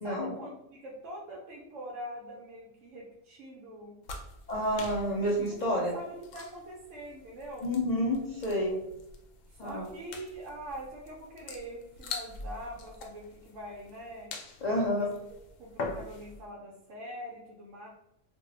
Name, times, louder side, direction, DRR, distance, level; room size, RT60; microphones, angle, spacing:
voice 1, 0.0-3.9 5.5-7.7 9.5-14.3 14.6-15.1 15.3-17.9, equal, 75° right, -3 dB, 1.0 m, -44 dB
sound 1, 4.0-16.4, left 3 dB, 85° left, 1.0 m, -44 dB
voice 2, 4.5-5.9 7.6-8.8 9.6-9.8 14.6-15.1, equal, 60° left, -4 dB, 0.4 m, -29 dB
2.7 x 2.0 x 3.7 m, 0.87 s
omnidirectional pair, 1.3 m